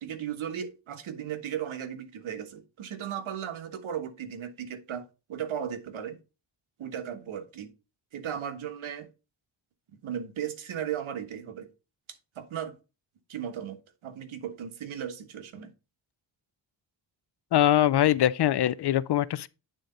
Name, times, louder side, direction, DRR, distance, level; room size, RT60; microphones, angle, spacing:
voice 1, 0.0-6.2 6.8-7.7 8.1-9.1 10.0-11.7 12.4-12.7 13.3-13.8 14.0-15.7, right 9 dB, 85° right, 1.3 m, -36 dB
voice 2, 17.5-19.5, left 12 dB, 60° left, 0.5 m, -23 dB
9.0 x 4.0 x 3.9 m
wide cardioid pair, 115°, 47 cm